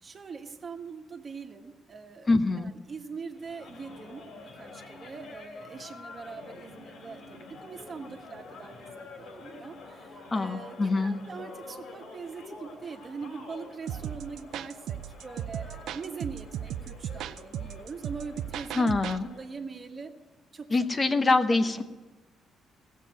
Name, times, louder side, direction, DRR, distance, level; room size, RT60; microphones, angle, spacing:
voice 1, 0.0-2.3 2.5-18.9 19.3-20.1 20.5-21.2 21.5-21.7, right 5 dB, 40° right, 4 dB, 1.5 m, -42 dB
voice 2, 2.3-2.7 10.3-11.1 18.7-19.3 20.7-21.8, left 3 dB, 30° left, 8 dB, 0.9 m, -24 dB
sound 1, 3.3-19.5, left 3 dB, 75° left, 3.1 m, -48 dB
sound 2, 13.9-19.2, right 10 dB, 80° right, 0.4 m, -37 dB
16.0 x 7.5 x 9.1 m, 1.2 s
cardioid pair, 90°, 0 cm